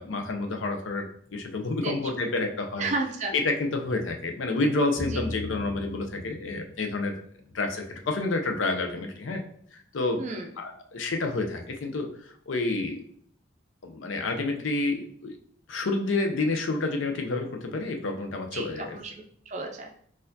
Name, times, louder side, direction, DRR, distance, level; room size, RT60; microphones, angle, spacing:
voice 1, 0.0-2.9 3.3-7.1 7.5-9.4 9.7-10.2 10.6-13.0 13.8-15.3 15.7-19.0, left 3 dB, 85° left, 4 dB, 0.5 m, -29 dB
voice 2, 1.8-2.3 2.8-3.3 5.1-5.2 10.2-10.5 14.5-14.6 18.5-20.0, right 3 dB, 35° right, 2 dB, 0.4 m, -33 dB
sound 1, 5.0-7.2, left 2 dB, 20° left, 1.0 m, -38 dB
4.2 x 2.4 x 2.6 m, 0.63 s
head